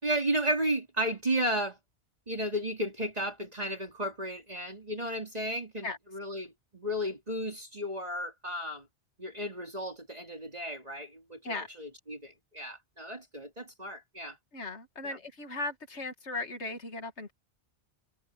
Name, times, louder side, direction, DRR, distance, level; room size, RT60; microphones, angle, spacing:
voice 1, 0.0-1.8 2.3-8.9 9.2-14.4 15.0-15.2, right 1 dB, 35° right, 3.1 m, -33 dB
voice 2, 14.5-17.3, left 2 dB, 85° left, 2.5 m, -37 dB
omnidirectional pair, 1.1 m